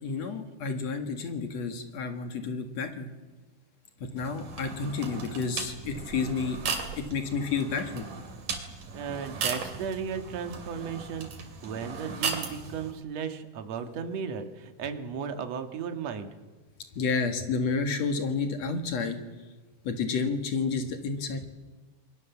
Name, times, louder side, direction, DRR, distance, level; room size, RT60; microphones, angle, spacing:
voice 1, 0.0-3.1 4.1-6.6 7.0-8.1 17.0-19.2 19.8-21.5, left 4 dB, 60° left, 7 dB, 2.8 m, -30 dB
sound 1, 4.2-12.9, right 5 dB, 75° right, 4.2 m, -37 dB
voice 2, 8.9-11.3 11.6-16.3, right 7 dB, 60° right, 7 dB, 2.8 m, -35 dB
28.5 x 22.0 x 7.2 m, 1.2 s
omnidirectional pair, 3.7 m